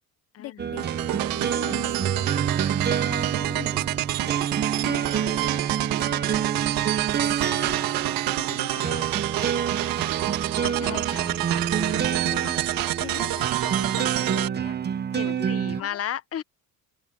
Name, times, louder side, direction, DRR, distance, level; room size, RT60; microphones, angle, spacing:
voice 1, 0.4-2.4 3.0-5.7 5.9-6.4 6.7-8.0 8.3-9.1 9.3-10.0 10.3-11.0 11.8-12.5 13.0-14.8 15.1-15.5 15.7-16.0, left 14 dB, 75° left, 2.7 m, -44 dB
sound 1, 0.6-15.8, right 7 dB, 30° right, 0.8 m, -28 dB
sound 2, 0.8-14.5, right 15 dB, 90° right, 1.5 m, -28 dB
voice 2, 8.7-9.2 10.6-11.4 15.2-16.4, left 10 dB, 45° left, 1.0 m, -35 dB
open air
cardioid pair, 130°, 34 cm